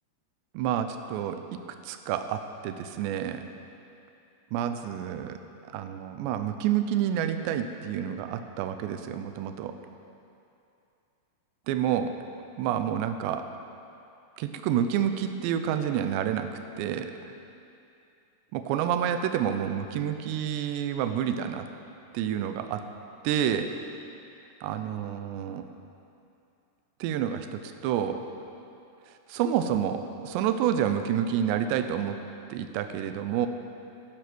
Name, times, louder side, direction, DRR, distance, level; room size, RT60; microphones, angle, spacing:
voice 1, 0.5-1.6 1.9-3.4 4.5-5.4 5.7-9.8 11.7-12.1 12.6-13.5 14.4-16.5 16.8-17.2 18.5-21.7 22.1-22.8 23.2-23.7 24.6-25.6 27.0-28.2 29.3-32.2 32.5-33.5, right 9 dB, 85° right, 8 dB, 2.9 m, -29 dB
14.0 x 10.5 x 6.2 m, 2.7 s
omnidirectional pair, 5.1 m